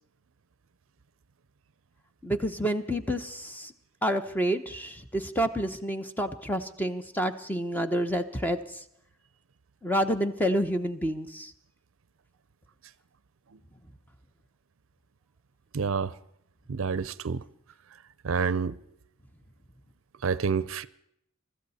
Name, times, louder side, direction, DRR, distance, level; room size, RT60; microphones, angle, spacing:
voice 1, 2.2-3.7 4.0-8.8 9.8-11.5, equal, 10° left, 0.9 m, -29 dB
voice 2, 15.7-16.1 16.7-17.4 18.2-18.8 20.2-20.9, right 5 dB, 65° right, 0.6 m, -28 dB
24.0 x 13.5 x 4.2 m
head